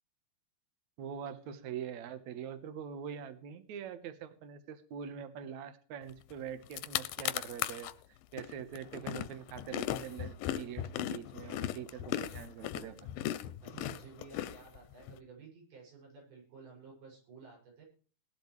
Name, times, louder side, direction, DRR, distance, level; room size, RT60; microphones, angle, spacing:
voice 1, 1.0-7.9 8.3-13.1, right 8 dB, 60° right, 11 dB, 2.3 m, -44 dB
sound 1, 6.3-6.4 6.6-7.9 8.4-15.1, left 13 dB, 80° left, 2.4 m, -37 dB
voice 2, 13.6-17.8, right 5 dB, 85° right, -2 dB, 8.8 m, -53 dB
18.0 x 11.5 x 3.3 m, 0.42 s
omnidirectional pair, 4.3 m